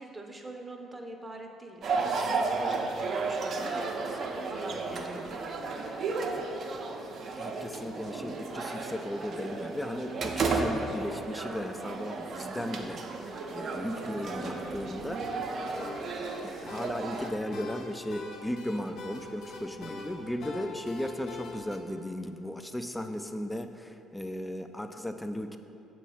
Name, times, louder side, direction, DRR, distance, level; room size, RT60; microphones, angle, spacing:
voice 1, 0.0-6.2, right 2 dB, 20° right, 2 dB, 0.7 m, -44 dB
sound 1, 1.8-17.3, right 3 dB, 55° right, 0.6 m, -33 dB
voice 2, 7.4-16.1 16.4-25.6, left 1 dB, 10° left, 7 dB, 0.4 m, -36 dB
sound 2, 15.7-21.8, left 3 dB, 65° left, 0.6 m, -43 dB
6.8 x 3.1 x 5.7 m, 2.7 s
supercardioid pair, 65°, 0 cm